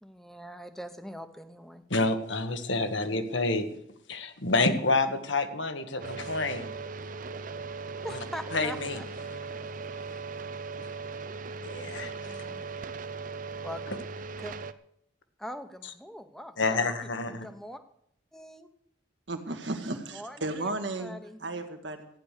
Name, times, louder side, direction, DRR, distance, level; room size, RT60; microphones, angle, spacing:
voice 1, 0.0-1.8 8.0-9.0 11.7-12.7 13.6-13.8 14.4-14.6 15.4-16.9 17.3-17.8 18.3-18.7 20.1-20.7 21.0-21.4, equal, ahead, 9 dB, 0.9 m, -42 dB
voice 2, 1.9-3.7 4.1-6.7 8.1-8.2 8.5-9.0 10.8-10.9 11.6-12.4 13.9-14.0 16.6-17.5, left 3 dB, 75° left, 8 dB, 1.5 m, -28 dB
sound 1, 6.0-14.7, right 4 dB, 45° right, 0.6 m, -38 dB
voice 3, 19.3-22.1, right 2 dB, 70° right, 7 dB, 1.8 m, -34 dB
14.5 x 9.9 x 6.7 m, 0.73 s
head